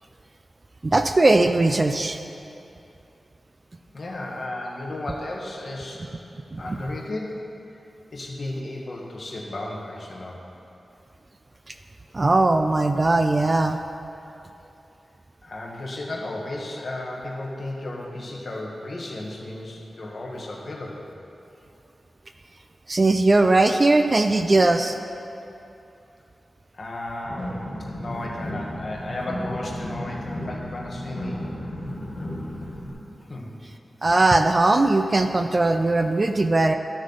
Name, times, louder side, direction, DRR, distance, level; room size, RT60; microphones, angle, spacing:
voice 1, 0.8-2.2 6.5-6.8 12.1-13.8 22.9-25.0 34.0-36.7, right 2 dB, 30° right, 7 dB, 0.3 m, -19 dB
voice 2, 3.9-6.1 6.6-7.5 8.1-10.4 15.4-21.2 26.7-27.7 28.0-31.4 33.2-33.5, left 1 dB, 45° left, -2 dB, 1.3 m, -34 dB
sound 1, 27.2-32.9, left 1 dB, 25° left, 2.0 m, -34 dB
13.0 x 6.4 x 4.0 m, 2.7 s
wide cardioid pair, 145°, 0 cm